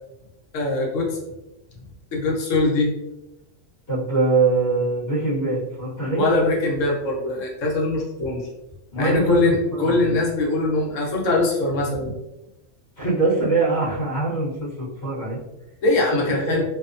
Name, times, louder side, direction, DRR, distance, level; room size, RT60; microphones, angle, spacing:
voice 1, 0.5-1.2 2.1-2.9 6.2-8.5 8.9-12.1 15.8-16.6, left 2 dB, 85° left, -2 dB, 1.1 m, -22 dB
voice 2, 3.9-6.2 8.9-10.2 13.0-15.4 16.1-16.2 16.4-16.6, right 3 dB, 50° left, -9 dB, 1.2 m, -23 dB
2.7 x 2.0 x 2.5 m, 0.97 s
omnidirectional pair, 1.3 m